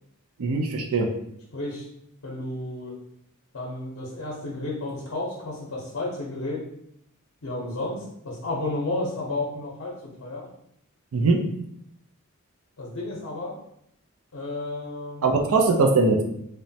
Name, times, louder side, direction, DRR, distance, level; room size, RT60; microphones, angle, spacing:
voice 1, 0.4-1.1 11.1-11.4 15.2-16.2, right 3 dB, 70° right, 2 dB, 0.4 m, -21 dB
voice 2, 1.5-1.9 2.2-2.9 3.5-6.6 7.4-9.9 10.2-10.5 12.8-13.6 14.3-15.5, left 2 dB, 60° left, -4 dB, 0.6 m, -32 dB
3.0 x 2.1 x 2.6 m, 0.74 s
head